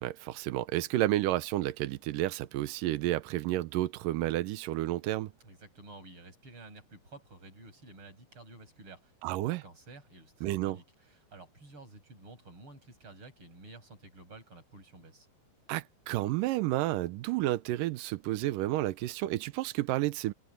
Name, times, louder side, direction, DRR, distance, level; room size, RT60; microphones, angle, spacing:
voice 1, 0.0-5.3 9.2-9.6 10.4-10.8 15.7-20.3, right 16 dB, 90° right, 1.9 m, -31 dB
voice 2, 5.4-9.1 9.4-15.3, right 2 dB, 30° right, 7.9 m, -52 dB
omnidirectional pair, 4.9 m